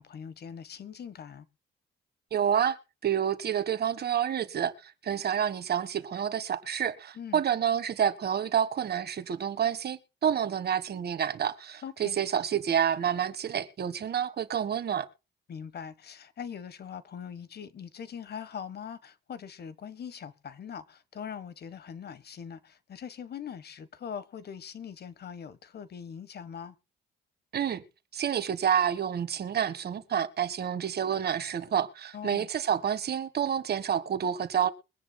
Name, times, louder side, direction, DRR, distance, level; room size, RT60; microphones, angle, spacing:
voice 1, 0.0-1.5 7.1-7.4 11.8-12.2 15.5-26.8 32.1-32.5, left 7 dB, 55° left, 1.3 m, -42 dB
voice 2, 2.3-2.8 3.0-15.1 27.5-27.8 28.1-34.7, right 9 dB, 55° right, 1.5 m, -29 dB
23.0 x 10.0 x 2.2 m
cardioid pair, 90°, 20 cm